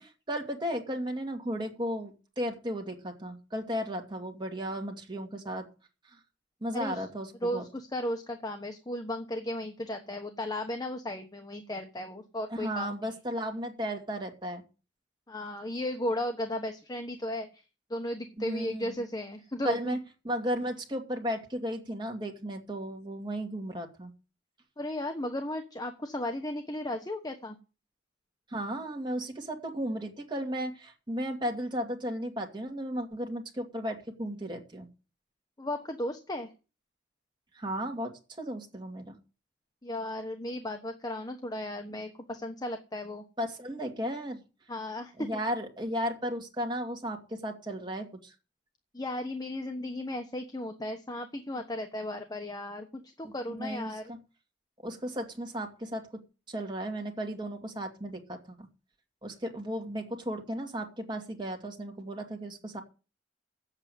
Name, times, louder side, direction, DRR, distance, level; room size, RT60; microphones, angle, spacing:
voice 1, 0.0-5.7 6.1-6.2 6.6-7.6 12.5-14.6 18.4-19.0 19.6-20.0 20.2-24.1 28.5-34.9 37.5-39.2 43.4-44.4 45.2-48.3 53.2-54.2 54.8-56.0 56.5-58.7 59.2-62.8, equal, 25° right, 2 dB, 2.5 m, -35 dB
voice 2, 6.7-7.1 7.4-13.0 15.3-17.6 17.9-20.0 24.8-27.6 35.6-36.5 39.8-43.2 44.7-45.4 48.9-54.0, left 1 dB, 20° left, 5 dB, 1.1 m, -35 dB
8.6 x 8.3 x 9.3 m, 0.33 s
head